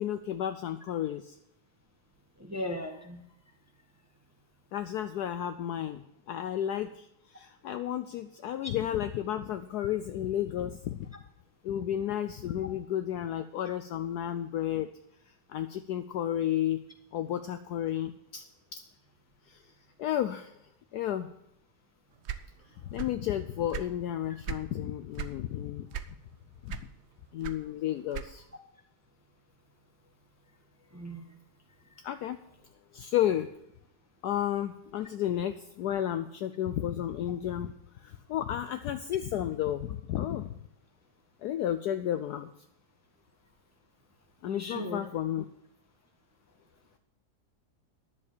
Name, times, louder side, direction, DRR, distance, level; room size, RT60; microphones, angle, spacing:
voice 1, 0.0-1.4 4.7-11.1 11.6-14.9 15.5-16.8 17.1-18.4 18.7-18.8 19.5-19.6 20.0-20.5 20.9-21.3 22.8-25.9 26.6-26.8 27.3-28.4 32.0-32.4 32.9-33.5 34.2-37.7 38.0-40.5 41.4-42.5 44.4-45.4, left 11 dB, 70° left, 9 dB, 1.0 m, -32 dB
voice 2, 2.4-3.2 30.9-31.2 44.4-45.0, left 1 dB, 10° right, 2 dB, 0.9 m, -37 dB
sound 1, 22.2-23.3 23.5-24.7 25.1-25.4 25.9-26.4 26.7-28.6, right 9 dB, 65° right, 0.6 m, -38 dB
11.0 x 7.4 x 6.6 m, 0.77 s
omnidirectional pair, 2.0 m